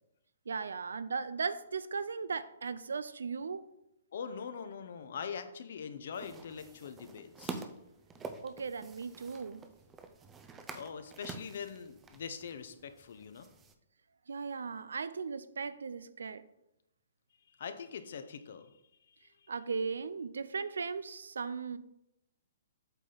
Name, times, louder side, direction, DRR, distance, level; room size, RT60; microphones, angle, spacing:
voice 1, 0.5-3.7 8.4-9.6 14.3-16.4 19.5-21.8, right 5 dB, 90° right, 0.5 m, -37 dB
voice 2, 4.1-7.7 10.7-13.5 17.5-18.7, left 6 dB, 65° left, 0.7 m, -43 dB
sound 1, 6.1-13.7, right 4 dB, 15° right, 0.5 m, -48 dB
8.1 x 4.2 x 3.9 m
hypercardioid pair, 150°, 0 cm